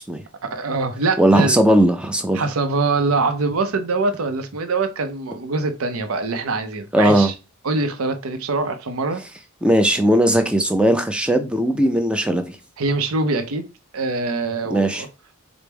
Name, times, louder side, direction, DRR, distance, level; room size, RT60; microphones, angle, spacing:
voice 1, 0.4-1.5 2.3-7.3 7.6-9.2 12.8-13.7 13.9-15.1, right 3 dB, 75° right, 0.5 m, -23 dB
voice 2, 1.2-2.4 6.9-7.3 9.6-12.6 14.6-15.0, right 1 dB, 5° right, 0.3 m, -18 dB
4.4 x 2.0 x 3.4 m
head